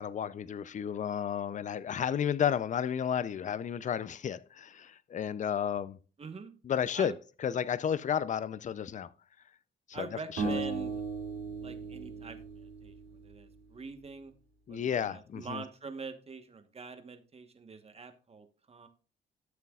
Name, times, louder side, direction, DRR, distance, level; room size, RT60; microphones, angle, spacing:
voice 1, 0.0-6.0 6.6-9.1 9.9-10.6 14.7-15.6, left 8 dB, 40° left, 0.5 m, -32 dB
voice 2, 6.2-6.5 6.9-7.1 9.9-10.9 11.6-12.9 13.2-14.3 14.7-18.9, right 4 dB, 30° right, 1.2 m, -44 dB
sound 1, 10.4-13.5, right 4 dB, 85° right, 3.9 m, -37 dB
12.5 x 6.7 x 2.4 m
cardioid pair, 90°, 20 cm